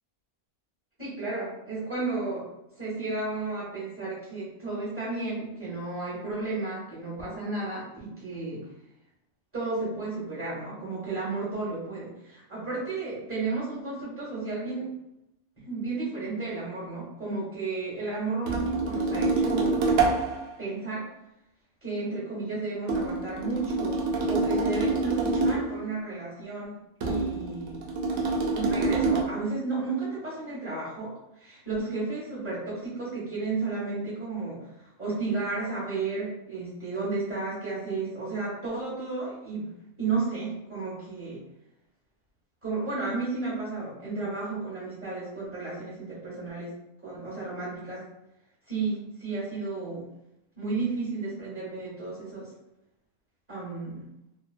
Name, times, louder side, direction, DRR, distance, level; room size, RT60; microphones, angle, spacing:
voice 1, 1.0-2.5 2.8-8.7 9.5-14.9 15.6-19.8 20.6-21.1 21.8-26.7 27.0-27.8 28.5-41.4 42.6-46.7 47.0-48.1 48.7-50.1 50.6-52.5 53.5-54.1, right 3 dB, 10° right, -7 dB, 1.2 m, -33 dB
sound 1, 18.5-20.5 22.9-25.8 27.0-29.2, right 3 dB, 70° right, 0.9 m, -26 dB
2.7 x 2.2 x 2.5 m, 0.87 s
omnidirectional pair, 1.6 m